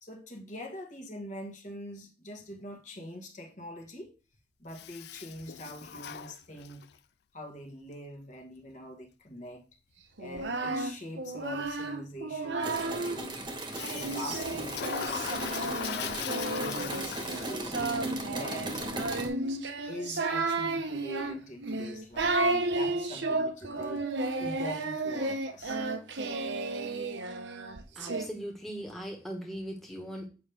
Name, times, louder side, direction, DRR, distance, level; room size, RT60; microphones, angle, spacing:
voice 1, 0.0-4.1 4.6-6.8 7.3-9.6 10.2-13.4 13.9-17.8 18.3-18.9 19.9-24.1 24.4-25.8, equal, 40° left, 1.5 m, -43 dB
Toilet flush, 4.7-7.0 13.7-17.9, left 8 dB, 55° left, 0.4 m, -39 dB
Singing, 10.2-13.2 13.8-28.3, right 2 dB, 70° right, 0.9 m, -33 dB
sound 1, 12.6-19.3, right 2 dB, 25° right, 1.3 m, -38 dB
voice 2, 27.9-30.3, equal, ahead, 1.4 m, -39 dB
8.5 x 5.7 x 3.5 m
head